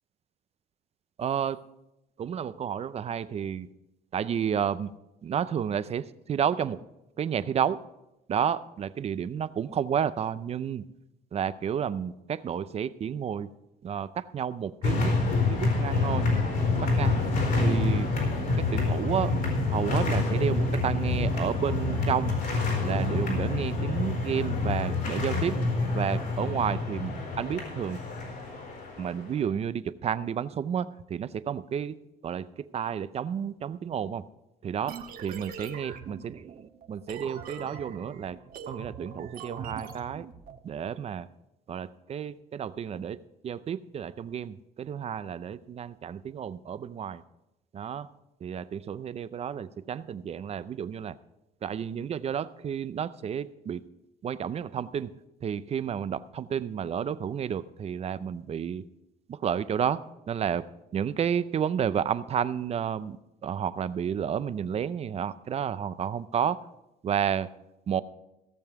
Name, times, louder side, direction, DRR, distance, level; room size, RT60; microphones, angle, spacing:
voice 1, 1.2-1.6 2.2-3.7 4.1-4.9 5.2-6.8 7.2-7.8 8.3-10.8 11.3-13.5 13.8-15.1 15.5-16.3 16.8-17.2 17.6-18.1 18.6-19.3 19.7-22.4 22.8-25.6 25.9-28.0 29.0-31.9 32.2-34.2 34.6-38.4 38.7-40.3 40.6-41.3 41.7-43.2 43.4-47.2 47.7-48.1 48.4-51.2 51.6-53.8 54.2-55.1 55.4-58.8 59.3-60.0 60.3-60.6 60.9-66.6 67.0-67.5 67.9-68.0, right 8 dB, 40° right, 15 dB, 0.5 m, -31 dB
sound 1, 14.8-29.2, left 3 dB, 65° left, 4.5 m, -27 dB
sound 2, 34.9-40.6, right 6 dB, 60° right, 1.2 m, -42 dB
16.5 x 7.1 x 4.7 m, 0.92 s
cardioid pair, 110°, 17 cm